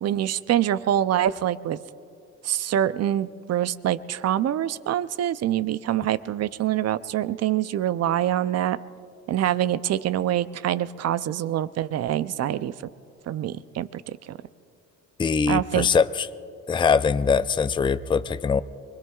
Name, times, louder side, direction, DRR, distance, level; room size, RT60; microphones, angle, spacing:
voice 1, 0.0-1.8 2.4-8.8 9.3-12.7 13.3-14.4 15.5-15.9, right 11 dB, 55° right, 15 dB, 0.5 m, -25 dB
voice 2, 15.2-16.3 16.7-18.6, left 5 dB, 15° left, 13 dB, 0.4 m, -22 dB
24.0 x 22.0 x 2.4 m, 2.5 s
cardioid pair, 90°, 30 cm